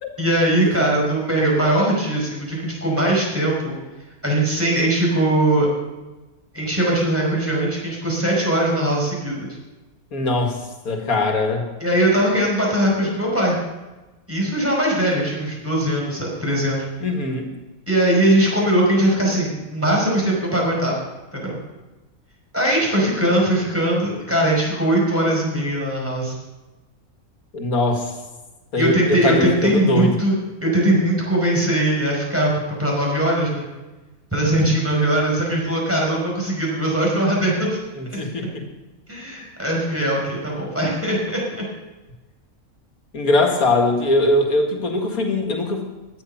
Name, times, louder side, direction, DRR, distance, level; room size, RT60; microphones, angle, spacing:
voice 1, 0.2-3.8 4.2-5.7 6.5-9.5 11.8-13.6 14.3-16.8 17.9-20.9 21.3-21.6 22.5-26.4 28.8-32.5 32.8-33.7 34.3-37.8 39.1-41.7, right 1 dB, 10° right, -3 dB, 5.2 m, -20 dB
voice 2, 10.1-11.7 17.0-17.5 27.5-28.1 28.7-30.1 30.8-30.9 37.9-38.6 43.1-45.9, left 2 dB, 85° left, 2 dB, 2.4 m, -21 dB
16.0 x 11.0 x 5.6 m, 1.1 s
omnidirectional pair, 1.5 m